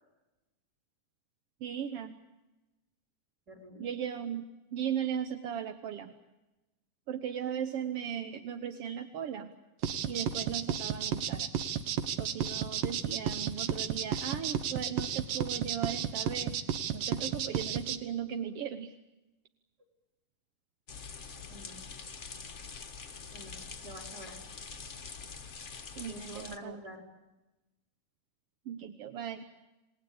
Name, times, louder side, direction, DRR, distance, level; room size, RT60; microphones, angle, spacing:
voice 1, 1.6-2.2 3.8-6.1 7.1-9.5 10.1-11.5 12.2-16.6 16.9-18.9 26.0-26.8 28.7-29.4, right 8 dB, 60° right, 8 dB, 1.7 m, -37 dB
voice 2, 3.5-3.9 21.5-21.8 23.3-23.5 23.8-24.4 26.1-27.0, equal, 25° right, 1 dB, 5.4 m, -47 dB
sound 1, 9.8-18.0, right 8 dB, 80° right, 2.9 m, -32 dB
sound 2, 20.9-26.6, left 5 dB, 40° left, 1.0 m, -45 dB
27.5 x 19.5 x 8.6 m, 1.0 s
omnidirectional pair, 3.8 m